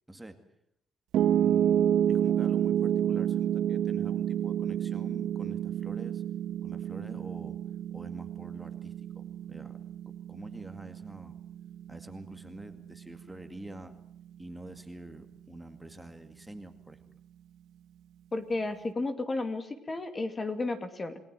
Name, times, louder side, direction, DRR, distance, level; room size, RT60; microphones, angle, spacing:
voice 1, 0.1-0.4 1.3-6.2 6.6-7.6 7.9-9.8 10.1-11.4 11.9-13.9 14.4-17.2, right 1 dB, 5° right, 6 dB, 2.2 m, -46 dB
Piano, 1.1-13.3, right 10 dB, 75° right, 1.3 m, -29 dB
voice 2, 18.3-21.2, left 2 dB, 25° left, 8 dB, 2.5 m, -33 dB
29.0 x 20.5 x 7.7 m, 0.75 s
cardioid pair, 125°, 0 cm